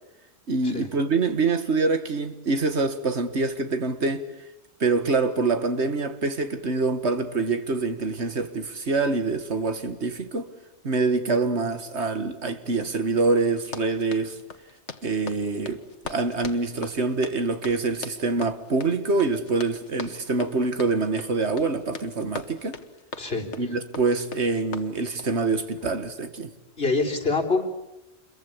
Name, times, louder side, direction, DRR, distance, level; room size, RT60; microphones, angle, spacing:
voice 1, 0.5-4.3 4.8-10.5 10.8-14.4 15.0-22.8 23.6-26.5, right 3 dB, 75° right, 2.1 m, -25 dB
Run, 13.6-25.4, left 4 dB, 85° left, 1.9 m, -41 dB
voice 2, 23.2-23.5 26.8-27.6, left 3 dB, 60° left, 4.0 m, -25 dB
28.0 x 23.0 x 8.6 m
omnidirectional pair, 1.2 m